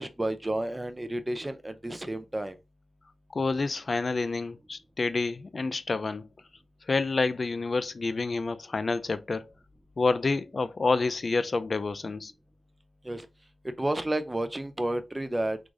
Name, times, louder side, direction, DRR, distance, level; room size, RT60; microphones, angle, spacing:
voice 1, 0.0-2.6 13.0-13.3 13.6-15.6, right 1 dB, 15° right, 0.5 m, -31 dB
voice 2, 3.3-6.3 6.9-9.5 10.0-12.3, left 3 dB, 45° left, 0.3 m, -28 dB
3.8 x 2.4 x 3.2 m
wide cardioid pair, 80°, 0 cm